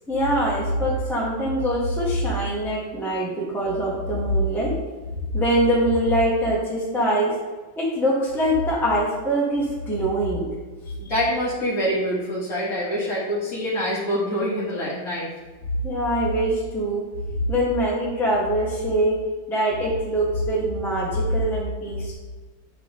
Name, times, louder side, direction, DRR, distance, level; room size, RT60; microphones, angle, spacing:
voice 1, 0.1-4.7 5.3-7.4 7.8-10.5 15.8-17.0 17.5-19.2 19.5-22.1, right 1 dB, ahead, -5 dB, 1.4 m, -23 dB
voice 2, 11.0-15.3, equal, 40° left, -8 dB, 2.7 m, -25 dB
8.4 x 5.9 x 3.7 m, 1.3 s
omnidirectional pair, 2.2 m